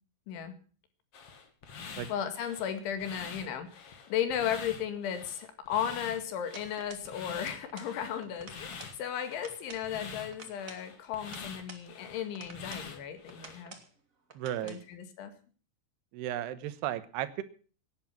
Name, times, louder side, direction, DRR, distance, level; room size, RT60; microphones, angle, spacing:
sound 1, 1.1-13.6, left 5 dB, 50° left, 1.9 m, -46 dB
voice 1, 1.8-13.8 14.6-15.3, left 9 dB, 80° left, 9 dB, 4.5 m, -35 dB
sound 2, 6.5-7.1 7.3-8.0 8.2-9.0 9.3-9.9 10.3-11.9 12.3-12.9 13.3-13.9 14.3-14.8, right 3 dB, 35° right, 1.3 m, -50 dB
voice 2, 14.4-14.8 16.1-17.4, right 12 dB, 75° right, 12 dB, 2.9 m, -34 dB
17.5 x 11.0 x 5.9 m, 0.41 s
omnidirectional pair, 5.3 m